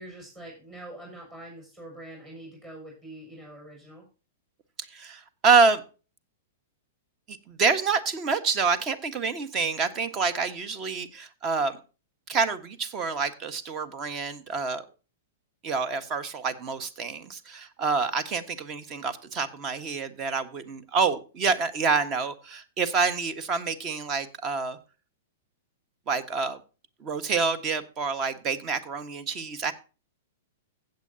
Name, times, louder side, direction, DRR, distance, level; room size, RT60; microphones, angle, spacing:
voice 1, 0.0-4.1, right 1 dB, 20° right, -2 dB, 6.1 m, -44 dB
voice 2, 4.8-5.8 7.3-11.8 12.3-14.8 15.6-24.8 26.1-26.6 27.0-29.7, right 5 dB, 35° right, 12 dB, 1.5 m, -27 dB
16.0 x 8.0 x 2.8 m, 0.33 s
hypercardioid pair, 110°, 0 cm